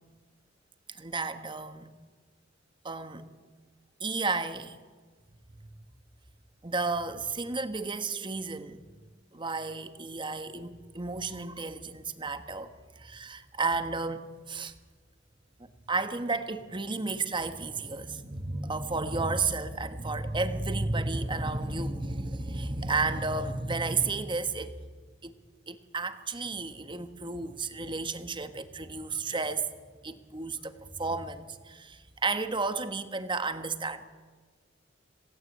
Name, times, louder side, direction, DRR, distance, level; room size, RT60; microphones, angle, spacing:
voice 1, 0.9-1.9 2.8-3.3 4.0-4.8 5.5-5.6 6.6-8.8 9.3-14.7 15.6-24.8 25.2-25.3 25.7-29.7 30.0-34.0, right 3 dB, 25° right, 1.4 m, -32 dB
27.0 x 18.0 x 8.4 m
head